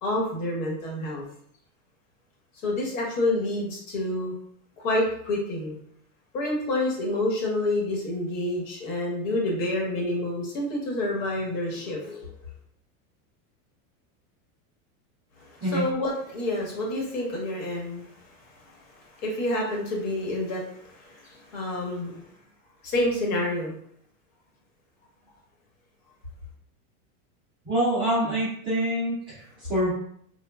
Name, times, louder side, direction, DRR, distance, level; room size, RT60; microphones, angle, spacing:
voice 1, 0.0-1.2 2.6-4.3 4.8-5.8 6.3-12.4 15.4-22.2 22.8-23.8, left 1 dB, 65° left, -2 dB, 1.1 m, -28 dB
voice 2, 27.6-29.9, right 1 dB, 10° right, -11 dB, 0.4 m, -26 dB
3.1 x 2.2 x 2.2 m, 0.66 s
supercardioid pair, 165°, 43 cm